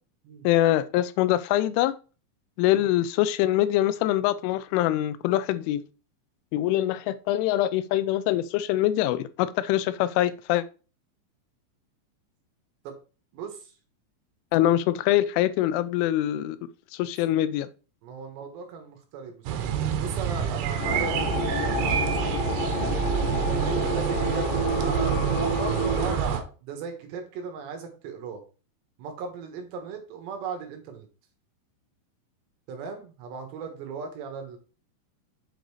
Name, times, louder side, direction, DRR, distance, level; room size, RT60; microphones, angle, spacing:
voice 1, 0.4-1.9 2.6-5.8 6.5-10.6 14.5-16.6 16.9-17.7, left 13 dB, 90° left, 3.1 m, -24 dB
voice 2, 13.3-13.7 18.0-19.6 20.0-22.3 22.6-23.0 23.5-28.4 29.0-31.1 32.7-34.6, right 5 dB, 70° right, 3.4 m, -37 dB
sound 1, 19.5-26.4, right 8 dB, 85° right, 3.4 m, -28 dB
sound 2, 20.8-26.2, equal, 60° left, 2.6 m, -29 dB
7.9 x 3.8 x 4.8 m
omnidirectional pair, 5.5 m